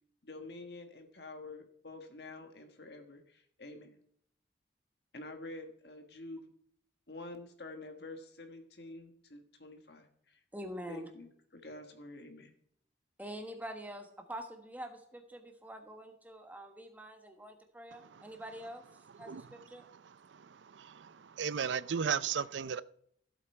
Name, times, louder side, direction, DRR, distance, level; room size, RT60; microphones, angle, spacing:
voice 1, 0.2-3.9 5.1-6.5 7.1-10.4 10.9-12.5, left 2 dB, 65° left, 1.6 m, -48 dB
voice 2, 10.5-11.1 13.2-18.8 19.2-19.9, equal, 10° right, 1.3 m, -45 dB
voice 3, 20.8-22.8, right 7 dB, 90° right, 0.5 m, -34 dB
15.5 x 7.9 x 4.5 m
head